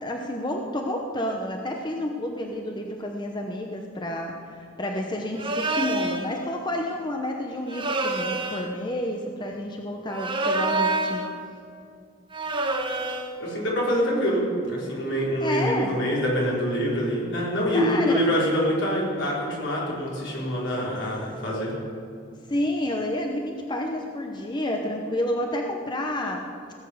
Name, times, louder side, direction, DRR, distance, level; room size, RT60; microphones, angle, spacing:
voice 1, 0.0-11.3 15.4-16.0 17.7-18.2 22.5-26.5, left 1 dB, 25° left, 2 dB, 0.8 m, -30 dB
Libra swing sound effect, 5.4-6.3 7.7-8.7 10.1-11.3 12.3-13.4, right 2 dB, 25° right, 1.0 m, -27 dB
voice 2, 13.4-21.7, equal, 70° left, -4 dB, 4.2 m, -25 dB
17.5 x 7.3 x 7.9 m, 2.4 s
head